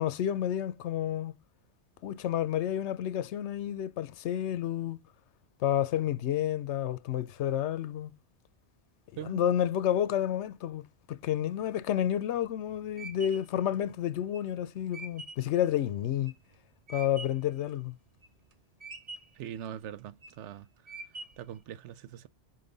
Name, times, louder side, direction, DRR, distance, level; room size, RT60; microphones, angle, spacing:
voice 1, 0.0-1.3 2.0-5.0 5.6-8.1 9.3-16.3 16.9-17.9, left 11 dB, 80° left, 0.9 m, -30 dB
sound 1, 12.1-17.5 18.0-18.5 18.8-19.5 20.0-20.5 20.9-21.6, right 3 dB, 35° right, 0.8 m, -45 dB
voice 2, 19.4-20.7 21.4-22.3, right 10 dB, 85° right, 0.9 m, -42 dB
5.5 x 5.4 x 3.9 m
omnidirectional pair, 1.2 m